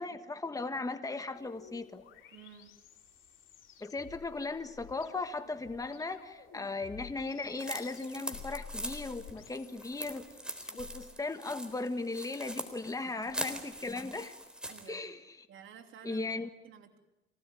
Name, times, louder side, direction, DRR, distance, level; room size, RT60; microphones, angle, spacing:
voice 1, 0.0-2.0 3.8-10.3 10.7-14.3 14.9-15.2 16.0-16.5, left 3 dB, 15° left, 8 dB, 1.5 m, -37 dB
sound 1, 1.4-11.1, left 8 dB, 80° left, 4.1 m, -52 dB
voice 2, 2.3-2.8 13.0-13.5 14.7-15.0 15.5-16.2 16.6-17.0, right 8 dB, 85° right, 3 dB, 3.1 m, -53 dB
sound 2, 7.6-14.9, right 1 dB, 5° right, 3.8 m, -42 dB
26.0 x 18.0 x 9.4 m, 0.98 s
cardioid pair, 90°, 20 cm